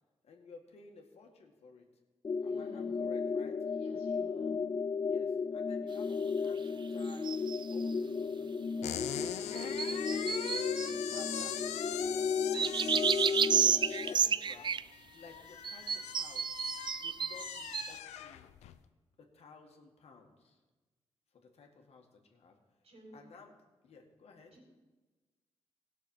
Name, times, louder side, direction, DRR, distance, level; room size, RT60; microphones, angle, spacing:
voice 1, 0.2-1.8 2.4-3.6 5.1-7.3 7.7-16.5 17.0-18.5 19.2-20.6 21.5-22.6 23.1-23.6 23.8-24.6, left 4 dB, 65° left, 3 dB, 1.9 m, -56 dB
sound 1, 2.2-14.1, left 5 dB, 35° left, 0.5 m, -34 dB
voice 2, 2.4-2.9 3.7-4.6 22.8-23.1 24.5-24.8, right 1 dB, 60° right, -2 dB, 4.3 m, -55 dB
sound 2, 7.1-7.8 9.6-11.8 12.5-14.8 15.6-17.9, right 7 dB, 45° right, 0.4 m, -31 dB
sound 3, 8.8-18.8, left 10 dB, 85° left, 0.6 m, -42 dB
17.0 x 6.3 x 5.6 m, 1.2 s
supercardioid pair, 50°, 11 cm